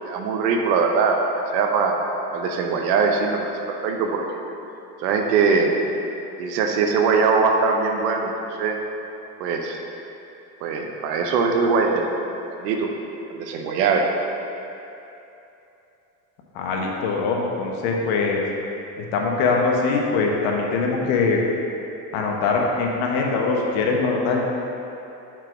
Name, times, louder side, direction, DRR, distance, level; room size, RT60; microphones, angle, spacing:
voice 1, 0.1-1.2 1.5-2.0 2.3-3.4 3.7-4.2 5.0-5.7 6.4-8.3 8.6-8.8 9.4-9.8 10.6-12.1 12.6-12.9 13.3-14.1, right 5 dB, 85° right, 2 dB, 0.9 m, -21 dB
voice 2, 16.5-18.4 19.0-21.4 22.1-24.5, left 4 dB, 65° left, 0 dB, 1.2 m, -22 dB
5.9 x 4.7 x 4.8 m, 2.9 s
supercardioid pair, 105°, 48 cm